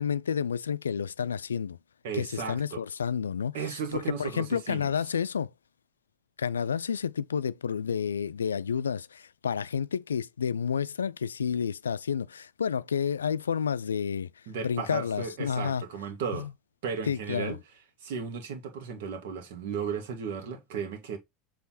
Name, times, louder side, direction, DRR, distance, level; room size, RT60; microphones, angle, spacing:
voice 1, 0.0-1.8 2.1-3.6 3.9-5.5 6.4-14.3 14.6-15.8 16.3-16.5 17.1-17.6, left 7 dB, 85° left, 0.3 m, -30 dB
voice 2, 2.0-2.8 3.5-4.9 14.5-16.5 16.8-17.6 18.0-21.2, right 6 dB, 70° right, 1.8 m, -35 dB
7.3 x 3.4 x 4.1 m
hypercardioid pair, 75°, 0 cm